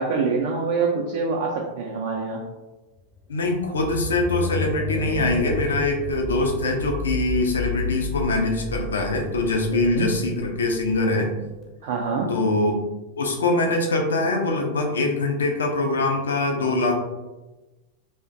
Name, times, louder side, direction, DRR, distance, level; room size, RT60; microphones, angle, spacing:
voice 1, 0.0-2.4 9.7-10.2 11.8-12.3, right 4 dB, 50° right, -1 dB, 0.3 m, -25 dB
sound 1, 3.1-11.5, left 3 dB, 10° left, 0.5 m, -31 dB
voice 2, 3.3-11.4 12.3-12.8 13.2-16.9, left 2 dB, 70° left, 2 dB, 0.4 m, -23 dB
2.4 x 2.1 x 2.5 m, 1.1 s
figure-of-eight pair, 90°, 0 cm